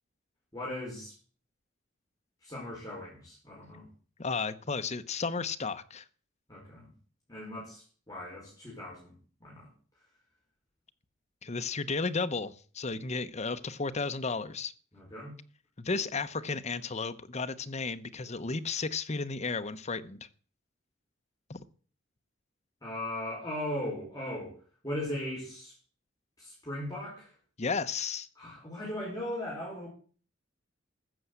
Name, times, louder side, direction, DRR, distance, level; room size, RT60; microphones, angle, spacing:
voice 1, 0.5-1.1 2.4-3.9 6.5-6.9 7.3-9.7 14.9-15.4 22.8-24.5 24.8-25.7 26.4-27.3 28.3-29.9, left 1 dB, 20° left, 4.9 m, -38 dB
voice 2, 4.2-6.0 11.4-14.7 15.8-20.3 21.5-21.6 27.6-28.3, left 4 dB, 35° left, 0.9 m, -33 dB
14.0 x 7.1 x 7.9 m
head